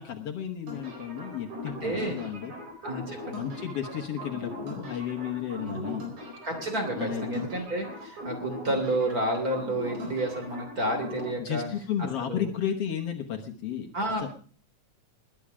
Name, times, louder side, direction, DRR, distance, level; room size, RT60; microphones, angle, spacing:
voice 1, 0.0-2.5 3.3-6.1 7.0-7.5 11.4-13.9 14.2-14.3, left 9 dB, 60° left, 4 dB, 2.1 m, -33 dB
sound 1, 0.7-11.3, left 1 dB, 85° right, 6.0 m, -40 dB
voice 2, 1.7-2.2 2.8-3.4 5.6-6.0 6.4-11.7 12.0-12.5 13.9-14.3, right 1 dB, 30° right, 4 dB, 3.3 m, -30 dB
20.0 x 10.0 x 4.9 m, 0.43 s
omnidirectional pair, 3.3 m